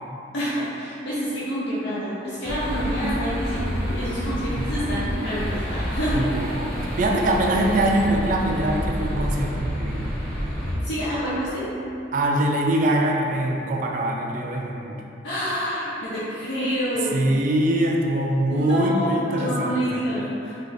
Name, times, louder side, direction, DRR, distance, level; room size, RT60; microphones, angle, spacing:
voice 1, 0.3-6.3 10.7-11.7 15.2-17.2 18.5-20.5, equal, 75° left, -9 dB, 0.6 m, -27 dB
sound 1, 2.4-10.7, equal, 10° left, 0.7 m, -28 dB
voice 2, 4.5-5.0 6.1-6.7 7.0-10.1 12.1-15.0 17.1-20.0, right 1 dB, 45° right, 0 dB, 0.3 m, -23 dB
3.8 x 2.3 x 3.1 m, 2.8 s
head